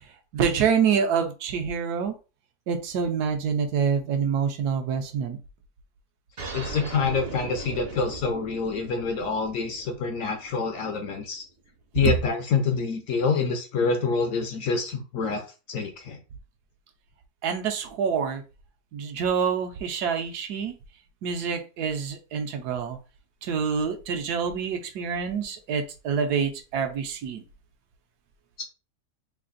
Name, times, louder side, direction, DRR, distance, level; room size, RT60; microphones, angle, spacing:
voice 1, 0.3-2.1 2.7-5.4 12.0-12.1 17.4-18.4 18.9-20.7 21.2-23.0 23.4-27.4, right 6 dB, 75° right, 6 dB, 1.2 m, -26 dB
sound 1, 6.4-11.4, right 3 dB, 50° right, 0.8 m, -39 dB
voice 2, 6.5-11.4 11.9-15.4 15.7-16.2 28.6-28.7, left 5 dB, 70° left, 5 dB, 0.8 m, -26 dB
3.3 x 2.5 x 3.8 m, 0.32 s
omnidirectional pair, 1.7 m